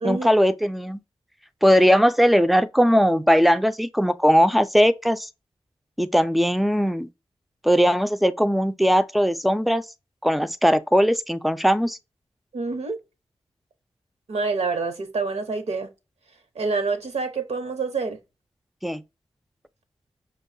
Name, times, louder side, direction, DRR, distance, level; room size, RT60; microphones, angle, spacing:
voice 1, 0.0-1.0 1.6-5.3 6.0-7.1 7.6-9.8 10.2-12.0 18.8-19.0, equal, ahead, 0.3 m, -19 dB
voice 2, 12.5-13.0 14.3-15.9 16.5-18.2, right 4 dB, 80° right, 0.9 m, -27 dB
5.7 x 2.3 x 2.6 m
wide cardioid pair, 90°, 11 cm